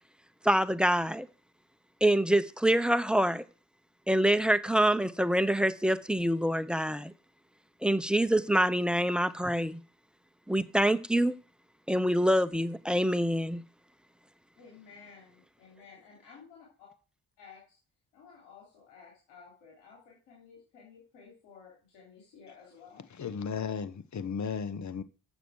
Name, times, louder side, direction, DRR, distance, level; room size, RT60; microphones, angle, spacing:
voice 1, 0.4-1.3 2.0-3.4 4.1-7.1 7.8-9.8 10.5-11.4 11.9-13.6, right 1 dB, ahead, 0.8 m, -26 dB
voice 2, 14.6-16.9 17.4-17.8 18.1-23.2, left 6 dB, 90° left, 3.2 m, -54 dB
voice 3, 23.2-25.0, left 6 dB, 45° left, 1.1 m, -35 dB
8.1 x 6.8 x 6.3 m
supercardioid pair, 55°, 41 cm